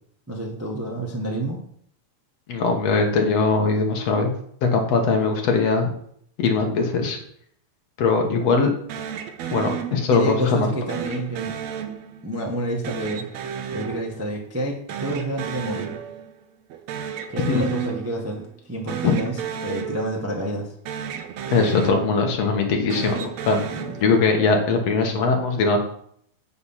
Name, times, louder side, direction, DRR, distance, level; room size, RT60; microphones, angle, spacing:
voice 1, 0.3-1.6 10.1-11.5 12.2-13.2 13.7-15.9 17.3-20.7 23.7-24.1, right 1 dB, 20° right, -1 dB, 0.3 m, -29 dB
voice 2, 2.5-4.3 4.6-5.9 6.4-7.2 8.0-8.7 9.5-10.7 17.5-17.7 19.0-19.1 21.5-23.6 24.0-25.8, left 4 dB, 65° left, 3 dB, 2.4 m, -21 dB
sound 1, 8.9-10.4 10.9-12.4 12.8-14.6 14.9-16.4 16.7-18.4 18.8-20.6 20.9-22.4 22.8-24.6, right 8 dB, 70° right, 2.0 m, -33 dB
8.7 x 6.6 x 5.7 m, 0.66 s
omnidirectional pair, 3.4 m